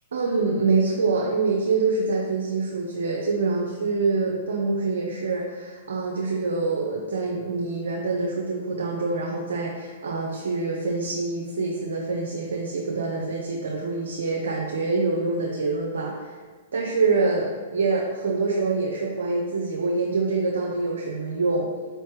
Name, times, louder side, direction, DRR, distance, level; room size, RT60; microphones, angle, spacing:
voice 1, 0.1-16.3 16.7-21.7, right 3 dB, 75° right, -2 dB, 0.5 m, -25 dB
4.7 x 3.2 x 3.1 m, 1.4 s
hypercardioid pair, 115°, 0 cm